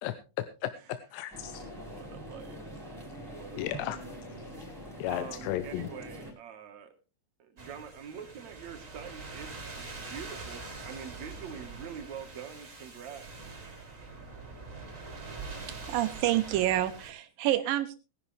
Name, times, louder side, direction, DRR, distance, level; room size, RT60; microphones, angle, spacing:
voice 1, 0.0-1.6 3.6-4.0 5.0-5.9, left 13 dB, 80° left, 11 dB, 2.7 m, -35 dB
sound 1, 1.3-6.3, equal, 5° right, 4.5 m, -44 dB
voice 2, 1.7-2.9 3.3-4.0 5.1-6.9 7.4-13.3, right 7 dB, 60° right, 6 dB, 1.9 m, -45 dB
sound 2, 7.6-17.1, right 3 dB, 20° right, 2.7 m, -44 dB
voice 3, 15.7-17.9, right 13 dB, 90° right, 10 dB, 2.0 m, -28 dB
20.0 x 11.0 x 3.2 m, 0.32 s
omnidirectional pair, 5.0 m